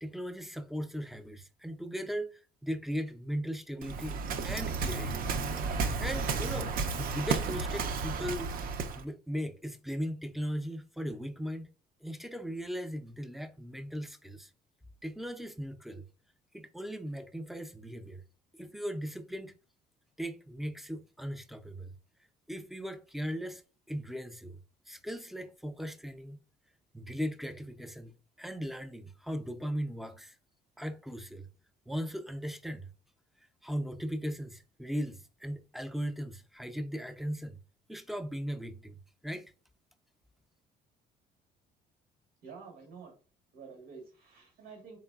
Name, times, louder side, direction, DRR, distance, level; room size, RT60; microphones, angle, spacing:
voice 1, 0.0-5.3 6.0-8.5 9.0-11.7 12.0-14.5 15.0-16.0 16.5-18.2 18.6-19.5 20.2-21.9 22.5-23.6 23.9-24.6 24.9-26.4 26.9-28.1 28.4-30.3 30.8-31.5 31.9-32.9 33.6-37.6 37.9-39.0 39.2-39.5, equal, ahead, 0.4 m, -38 dB
Waves surf, 3.8-9.0, right 4 dB, 60° right, 0.5 m, -32 dB
voice 2, 42.4-43.1 43.5-45.0, right 5 dB, 90° right, 1.4 m, -49 dB
3.9 x 3.5 x 2.3 m
cardioid pair, 110°, 17 cm